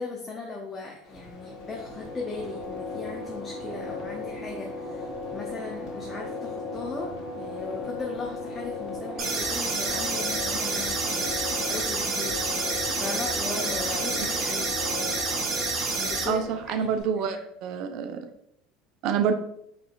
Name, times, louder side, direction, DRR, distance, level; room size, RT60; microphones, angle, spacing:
voice 1, 0.0-11.3 11.7-12.6 13.0-14.7 16.0-16.9 17.3-17.4, left 4 dB, 25° left, -1 dB, 0.7 m, -37 dB
sound 1, 1.0-17.0, left 2 dB, 50° left, 1.5 m, -36 dB
sound 2, 9.2-16.2, right 3 dB, 40° right, 1.1 m, -28 dB
voice 2, 16.3-18.2 19.0-19.3, right 7 dB, 60° right, 7 dB, 0.5 m, -27 dB
4.9 x 3.2 x 2.4 m, 0.73 s
hypercardioid pair, 80°, 0 cm